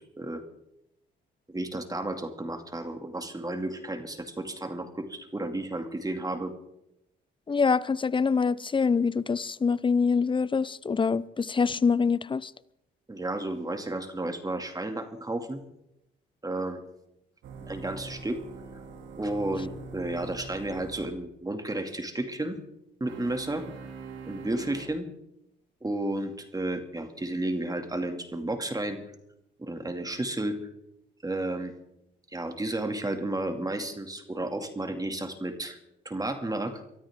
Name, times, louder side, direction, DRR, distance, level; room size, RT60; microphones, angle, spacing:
voice 1, 1.5-6.5 13.1-15.6 16.4-16.8 17.7-18.4 19.2-22.6 23.0-23.7 24.2-25.1 25.8-29.0 29.6-30.7 31.2-31.7 32.3-35.8 36.0-36.8, right 1 dB, 20° right, 2.4 m, -32 dB
voice 2, 7.5-12.5, left 5 dB, 25° left, 0.7 m, -25 dB
sound 1, 17.4-21.1 23.0-24.8, right 4 dB, 80° right, 2.5 m, -43 dB
23.5 x 13.0 x 3.7 m
supercardioid pair, 65°, 19 cm